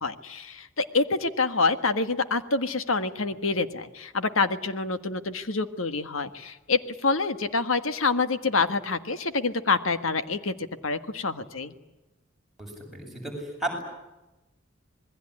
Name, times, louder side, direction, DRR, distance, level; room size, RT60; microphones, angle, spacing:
voice 1, 0.0-11.7, left 4 dB, 85° left, 10 dB, 1.6 m, -27 dB
voice 2, 12.6-13.8, right 1 dB, ahead, -1 dB, 7.8 m, -34 dB
27.0 x 21.0 x 10.0 m, 1.0 s
head